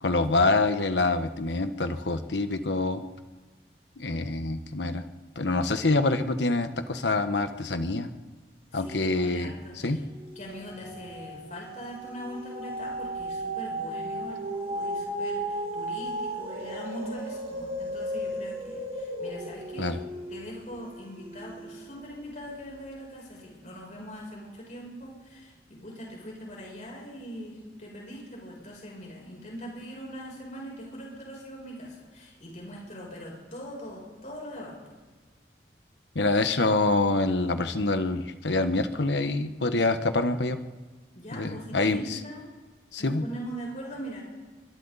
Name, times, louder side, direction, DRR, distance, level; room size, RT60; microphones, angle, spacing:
voice 1, 0.0-3.0 4.0-5.0 5.3-8.1 8.7-10.0 19.8-20.0 36.1-40.6 41.3-42.2 42.9-43.2, left 2 dB, 80° left, 9 dB, 1.3 m, -26 dB
voice 2, 8.7-10.0 10.3-20.0 20.3-34.9 41.1-42.5 43.0-44.2, equal, 40° left, -3 dB, 7.6 m, -41 dB
sound 1, 9.2-9.5 9.9-22.3 22.9-23.0, right 1 dB, 35° right, 4.0 m, -35 dB
27.5 x 24.5 x 4.2 m, 1.3 s
head